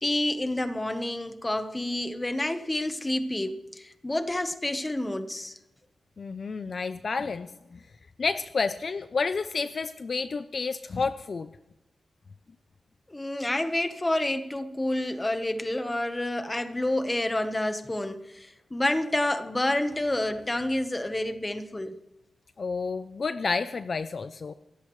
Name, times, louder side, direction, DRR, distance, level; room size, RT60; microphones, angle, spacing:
voice 1, 0.0-5.6 13.1-21.9, left 1 dB, 15° left, 1.1 m, -29 dB
voice 2, 6.2-7.8 8.2-11.5 22.6-24.5, left 4 dB, 45° left, 0.5 m, -30 dB
28.5 x 15.0 x 3.2 m
wide cardioid pair, 130°, 0 cm